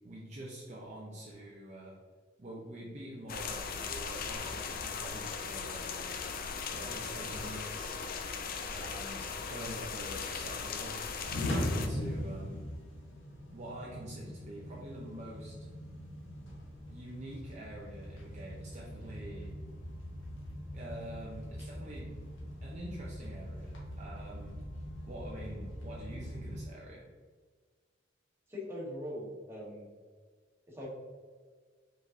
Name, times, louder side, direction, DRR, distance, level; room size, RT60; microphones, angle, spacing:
voice 1, 0.0-2.0 2.4-6.1 6.7-7.9 8.7-12.7 13.5-15.5 16.9-19.5 20.7-22.1 22.6-24.6 25.1-27.1, right 1 dB, 40° right, -5 dB, 0.7 m, -46 dB
sound 1, 3.3-11.9, left 5 dB, 50° left, 0.4 m, -38 dB
sound 2, 8.7-26.6, left 1 dB, 80° left, 1.3 m, -41 dB
voice 2, 28.5-29.9 30.7-30.9, left 1 dB, 15° right, -5 dB, 1.3 m, -41 dB
4.9 x 3.9 x 2.7 m, 1.5 s
head